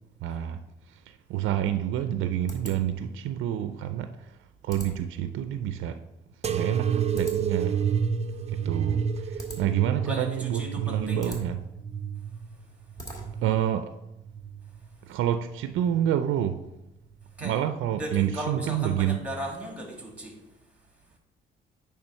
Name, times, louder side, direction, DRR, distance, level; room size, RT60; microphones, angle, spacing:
voice 1, 0.2-0.6 0.9-4.4 4.6-6.0 6.5-7.8 8.5-11.6 13.4-14.0 15.1-16.6 17.4-19.2, right 10 dB, 85° right, 0.4 m, -28 dB
sound 1, 1.7-13.6, right 1 dB, 20° left, 2.0 m, -47 dB
sound 2, 6.4-13.6 14.2-14.9 15.7-16.2 17.2-17.3, right 7 dB, 35° right, 0.5 m, -30 dB
voice 2, 10.0-11.4 13.2-13.3 15.1-15.2 17.4-17.5 18.0-20.4, right 1 dB, 5° right, 2.2 m, -36 dB
8.9 x 3.5 x 5.5 m
cardioid pair, 90°, 20 cm